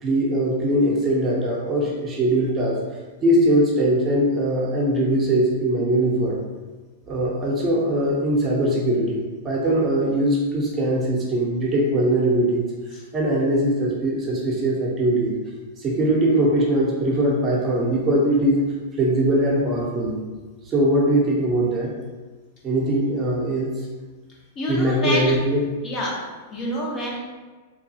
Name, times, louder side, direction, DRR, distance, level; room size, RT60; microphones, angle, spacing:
voice 1, 0.0-2.8 3.2-6.4 7.1-12.6 13.1-15.3 15.8-18.6 19.0-20.2 20.7-21.9 22.6-23.7 24.7-25.6, right 1 dB, 25° right, -4 dB, 0.7 m, -21 dB
voice 2, 24.6-25.3 25.8-27.2, left 1 dB, 35° left, -3 dB, 0.7 m, -27 dB
2.9 x 2.2 x 2.7 m, 1.3 s
hypercardioid pair, 120°, 0 cm